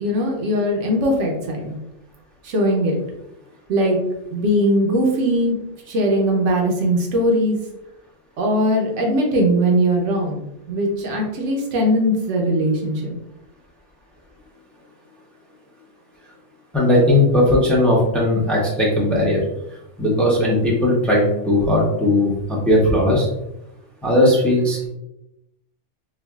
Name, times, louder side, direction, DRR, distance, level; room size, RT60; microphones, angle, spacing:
voice 1, 0.0-1.7 2.4-3.0 3.7-4.0 4.3-5.6 5.9-7.6 8.4-10.4 10.7-13.2, equal, 70° right, 0 dB, 1.1 m, -20 dB
voice 2, 16.7-19.4 20.0-23.3 24.0-24.9, left 1 dB, ahead, -4 dB, 0.6 m, -17 dB
4.6 x 2.4 x 2.3 m, 0.88 s
omnidirectional pair, 1.3 m